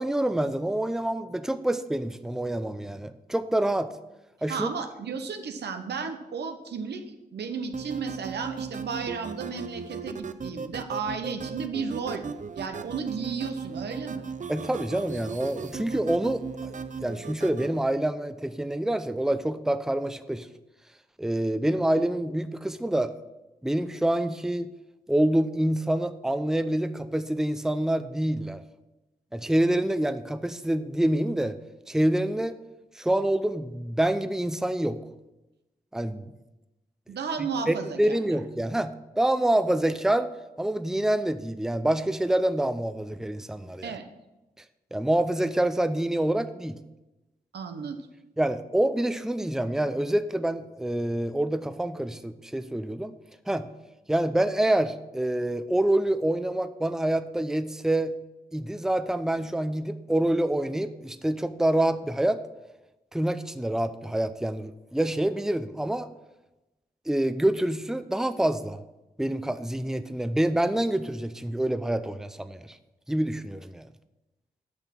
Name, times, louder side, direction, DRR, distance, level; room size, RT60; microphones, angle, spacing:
voice 1, 0.0-3.9 4.4-4.7 14.5-16.7 17.0-20.5 21.2-23.1 23.6-24.7 25.1-28.6 29.3-31.6 31.9-32.5 33.0-35.0 35.9-36.3 37.4-40.3 40.6-43.9 44.9-46.8 48.4-53.1 53.5-53.7 54.1-58.2 58.5-62.4 63.1-66.1 67.1-68.8 69.2-72.7 73.1-73.9, right 1 dB, 5° right, 11 dB, 0.6 m, -26 dB
voice 2, 4.5-12.2 12.5-14.2 37.1-38.4 43.8-44.1 47.5-48.0, right 5 dB, 80° right, 7 dB, 0.9 m, -33 dB
sound 1, 7.7-17.8, right 5 dB, 45° right, 0.6 m, -37 dB
9.0 x 5.8 x 5.9 m, 1.0 s
cardioid pair, 45°, 17 cm